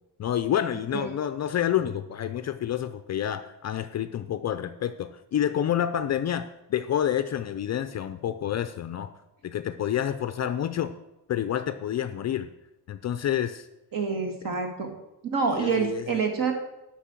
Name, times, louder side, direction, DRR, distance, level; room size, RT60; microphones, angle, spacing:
voice 1, 0.2-9.1 9.4-10.9 11.3-12.5 12.9-13.7 15.5-16.1, left 10 dB, 40° left, 10 dB, 0.4 m, -28 dB
voice 2, 13.9-14.9 15.3-16.5, right 5 dB, 50° right, 4 dB, 1.9 m, -27 dB
8.3 x 5.8 x 7.5 m, 0.93 s
cardioid pair, 165°, 41 cm